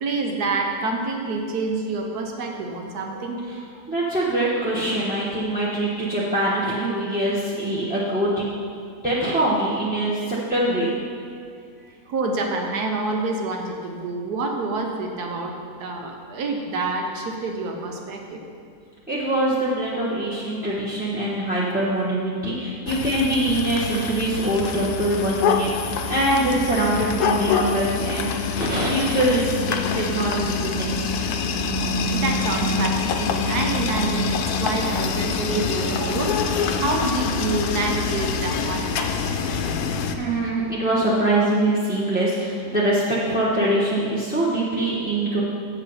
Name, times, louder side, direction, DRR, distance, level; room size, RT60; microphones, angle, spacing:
voice 1, 0.0-3.8 12.1-18.4 31.8-39.2, right 3 dB, 75° right, 2 dB, 1.4 m, -27 dB
voice 2, 3.9-8.5 9.0-10.9 19.1-31.3 40.2-45.4, right 1 dB, 5° right, -8 dB, 0.8 m, -23 dB
sound 1, 22.9-40.2, left 5 dB, 75° left, 1.1 m, -25 dB
7.9 x 7.0 x 5.6 m, 2.3 s
omnidirectional pair, 1.8 m